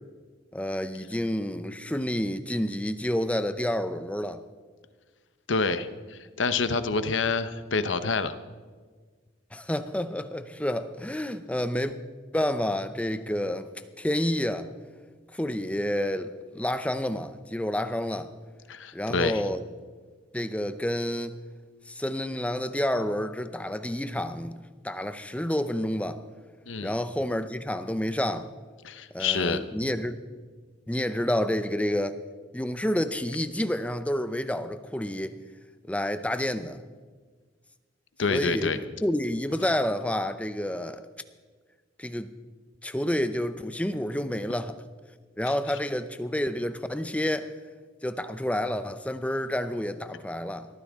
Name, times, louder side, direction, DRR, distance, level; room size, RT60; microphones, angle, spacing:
voice 1, 0.5-4.4 9.5-11.9 12.3-13.7 14.0-14.7 15.3-18.3 18.9-19.6 20.3-21.3 21.9-24.6 24.8-26.2 26.8-28.5 29.1-30.2 30.9-32.2 32.5-35.3 35.9-36.8 38.3-41.0 42.0-42.3 42.8-44.8 45.4-47.5 48.0-50.7, left 1 dB, 5° left, 0.6 m, -29 dB
voice 2, 5.5-8.3 18.7-19.4 26.7-26.9 28.8-29.7 38.2-38.8, left 4 dB, 80° left, 0.9 m, -27 dB
21.0 x 14.0 x 3.6 m
head